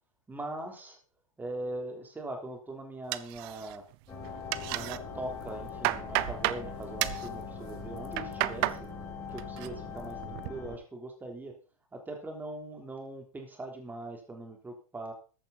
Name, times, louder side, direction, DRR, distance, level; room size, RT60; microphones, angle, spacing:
voice 1, 0.3-1.0 1.4-3.8 4.6-8.8 9.3-11.5 11.9-15.1, right 2 dB, 10° right, 3 dB, 3.7 m, -41 dB
sound 1, 3.1-4.0 4.2-5.0 5.4-6.6 7.0-7.3 7.9-8.8 9.2-9.7 10.1-10.5, right 18 dB, 45° right, 0.7 m, -32 dB
sound 2, 4.1-10.8, left 5 dB, 15° left, 6.9 m, -41 dB
14.5 x 10.5 x 4.1 m, 0.35 s
hypercardioid pair, 130°, 18 cm